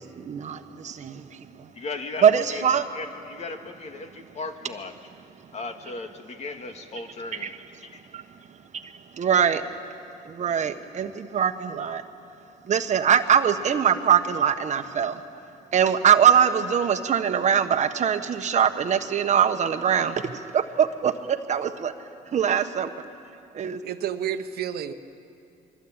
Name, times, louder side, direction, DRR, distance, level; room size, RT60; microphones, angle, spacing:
voice 1, 0.0-1.7 2.2-2.9 5.4-5.5 7.4-7.5 7.8-9.8 10.2-22.9 23.5-23.8, right 8 dB, 45° right, 8 dB, 1.3 m, -23 dB
voice 2, 1.7-4.9 5.5-8.0, left 3 dB, 40° left, 5 dB, 2.2 m, -37 dB
voice 3, 23.8-24.9, right 9 dB, 65° right, 9 dB, 1.2 m, -30 dB
25.5 x 23.5 x 8.9 m, 2.5 s
cardioid pair, 110°, 17 cm